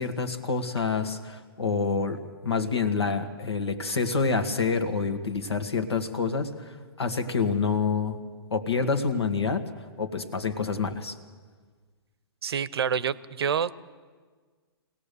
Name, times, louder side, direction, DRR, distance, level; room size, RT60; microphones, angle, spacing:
voice 1, 0.0-8.2 8.5-9.6 10.0-11.2, left 4 dB, 85° left, 7 dB, 1.9 m, -27 dB
voice 2, 12.4-13.7, right 7 dB, 70° right, 19 dB, 0.7 m, -27 dB
23.0 x 17.5 x 6.9 m, 1.5 s
hypercardioid pair, 130°, 13 cm